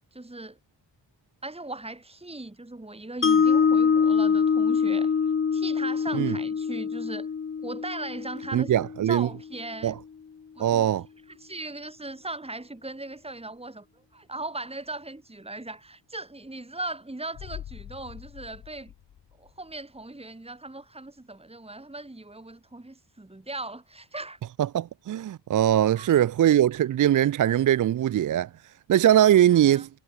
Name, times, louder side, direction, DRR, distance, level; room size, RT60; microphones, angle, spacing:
voice 1, 0.1-0.6 1.4-5.1 5.5-7.3 7.6-8.7 9.0-10.0 10.6-10.9 11.3-13.8 14.1-18.9 19.4-24.4 25.9-26.1 29.5-29.8, right 2 dB, 15° right, 3.4 m, -38 dB
Mallet percussion, 3.2-9.4, left 6 dB, 30° left, 0.7 m, -24 dB
voice 2, 8.5-9.3 9.8-10.0 10.6-11.0 24.6-28.5 28.9-29.9, right 11 dB, 45° right, 0.4 m, -21 dB
sound 1, 17.3-20.0 20.3-20.4, left 11 dB, 90° left, 2.1 m, -44 dB
cardioid pair, 75°, 44 cm